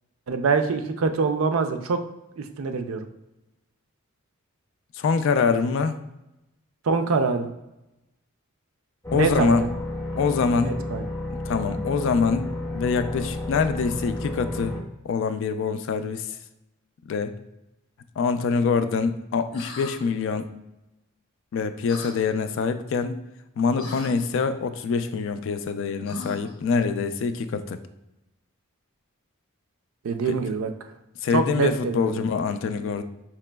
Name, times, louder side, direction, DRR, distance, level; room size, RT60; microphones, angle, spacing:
voice 1, 0.3-2.0 2.4-3.1 6.8-7.5 9.1-9.7 10.7-11.0 30.0-30.7 31.3-32.2, right 4 dB, 75° right, 7 dB, 0.4 m, -24 dB
voice 2, 4.9-6.0 9.1-9.6 10.2-10.7 11.5-12.5 12.7-14.8 15.0-16.3 17.1-17.3 18.2-20.5 21.5-23.2 23.6-27.8 30.3-30.4 31.2-33.0, left 5 dB, 60° left, 10 dB, 0.3 m, -25 dB
sound 1, 9.0-14.8, left 1 dB, 15° left, 0.5 m, -31 dB
sound 2, 19.5-20.0 21.9-22.2 23.8-24.1 26.1-26.6, left 3 dB, 85° left, 0.8 m, -38 dB
4.9 x 2.9 x 2.2 m, 0.93 s
head